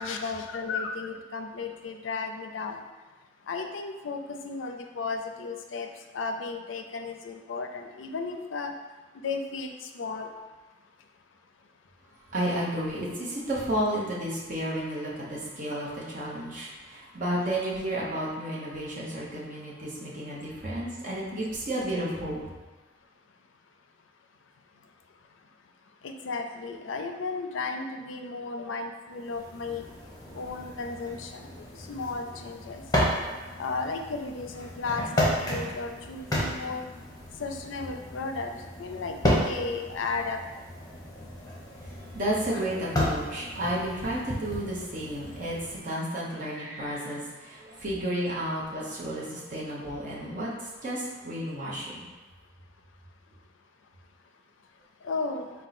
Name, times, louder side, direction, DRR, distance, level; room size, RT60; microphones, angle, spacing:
voice 1, 0.0-2.8 3.5-5.9 6.1-8.7 9.2-10.3 26.0-29.8 30.3-31.5 31.9-32.8 33.6-36.9 37.4-38.5 38.8-40.4 55.0-55.5, left 4 dB, 75° left, 5 dB, 0.4 m, -34 dB
voice 2, 12.3-22.4 41.8-52.0, right 1 dB, 45° right, -6 dB, 1.0 m, -32 dB
sound 1, 29.2-45.8, left 1 dB, 20° left, 0.9 m, -33 dB
4.4 x 2.3 x 4.1 m, 1.3 s
head